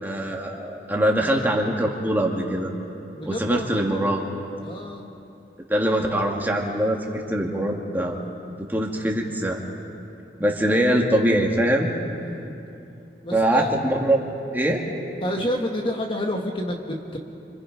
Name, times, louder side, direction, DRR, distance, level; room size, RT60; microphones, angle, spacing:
voice 1, 0.0-2.7 3.2-4.2 5.7-8.3 8.6-9.7 10.4-11.9 13.3-14.2 14.5-14.8, right 1 dB, 10° right, -1 dB, 2.1 m, -23 dB
voice 2, 3.1-3.7 4.6-5.1 12.2-12.6 13.2-13.8 15.2-17.2, left 1 dB, 30° left, 1 dB, 1.5 m, -29 dB
29.5 x 26.0 x 5.3 m, 2.8 s
head